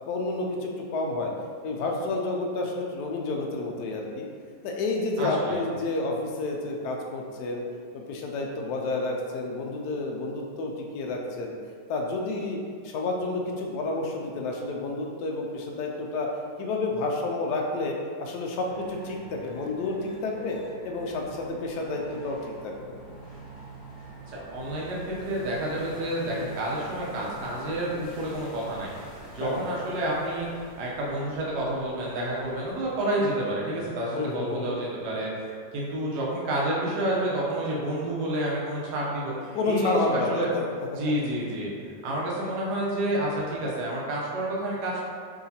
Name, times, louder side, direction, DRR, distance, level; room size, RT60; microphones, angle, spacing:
voice 1, 0.1-1.3 1.6-4.3 4.6-7.6 7.9-11.5 11.9-12.6 12.8-16.3 16.6-20.6 20.8-22.4 22.6-22.9 29.4-29.7 34.1-34.8 39.5-40.7, left 2 dB, 75° left, 0 dB, 1.1 m, -30 dB
voice 2, 5.2-5.5 24.3-28.9 29.3-40.0 40.3-40.5 40.9-41.7 42.0-45.0, right 1 dB, 75° right, -5 dB, 1.3 m, -29 dB
sound 1, 18.7-33.0, right 1 dB, 60° left, 1.4 m, -46 dB
4.8 x 2.8 x 2.7 m, 2.1 s
omnidirectional pair, 1.8 m